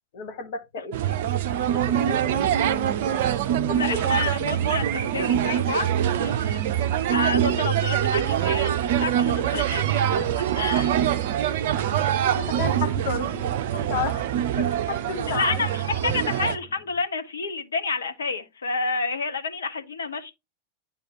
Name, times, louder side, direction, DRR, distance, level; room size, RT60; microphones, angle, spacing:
voice 1, 0.1-1.2 1.5-3.0 3.7-4.0 11.9-14.3 14.6-15.7, left 5 dB, 50° left, 1.3 m, -33 dB
sound 1, 0.9-16.6, right 10 dB, 55° right, 0.5 m, -24 dB
voice 2, 3.7-10.2 10.5-10.9 15.3-20.3, left 4 dB, 70° left, 0.9 m, -30 dB
sound 2, 16.1-17.0, right 2 dB, 15° right, 3.1 m, -44 dB
10.5 x 3.7 x 2.9 m
figure-of-eight pair, 90°, 0 cm